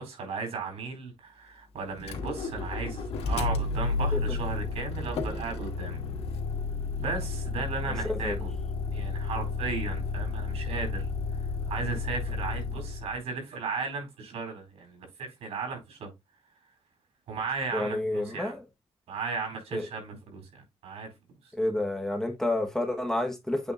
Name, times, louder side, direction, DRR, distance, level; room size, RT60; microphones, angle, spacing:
voice 1, 0.0-6.0 7.0-8.5 8.9-11.1 11.7-16.1 17.3-18.5 19.1-21.1, right 4 dB, 85° right, 4.2 m, -35 dB
Motor vehicle (road), 2.0-13.2, left 4 dB, 75° left, 1.6 m, -32 dB
voice 2, 7.9-8.4 17.7-18.6 19.7-19.9 21.5-23.7, left 1 dB, 5° left, 1.2 m, -29 dB
8.2 x 3.6 x 3.7 m
wide cardioid pair, 170°, 10 cm